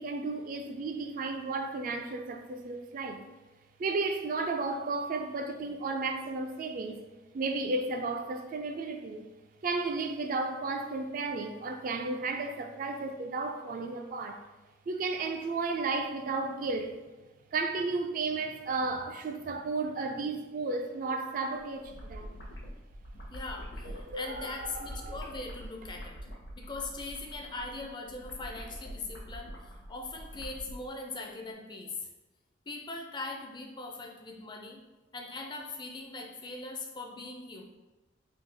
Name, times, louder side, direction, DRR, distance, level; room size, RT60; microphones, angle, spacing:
voice 1, 0.0-3.2 3.8-7.0 7.3-9.3 9.6-14.4 14.9-17.0 17.5-22.4 23.8-25.2, right 3 dB, 45° right, 0.3 m, -33 dB
sound 1, 21.8-30.8, equal, 65° left, 0.8 m, -44 dB
voice 2, 23.3-26.3 26.6-32.1 32.7-34.8 35.1-37.6, left 3 dB, 25° left, 0.4 m, -41 dB
3.4 x 2.7 x 3.7 m
head